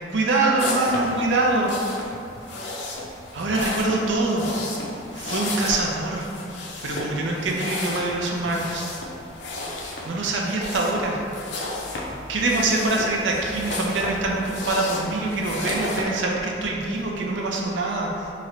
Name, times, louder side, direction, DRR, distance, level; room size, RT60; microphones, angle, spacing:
voice 1, 0.1-1.7 3.3-4.5 5.1-6.3 6.8-8.9 10.1-11.2 12.3-18.3, right 2 dB, 85° right, -1 dB, 0.5 m, -24 dB
sound 1, 0.6-16.0, left 2 dB, 70° left, 0.5 m, -33 dB
3.0 x 2.5 x 4.2 m, 2.6 s
head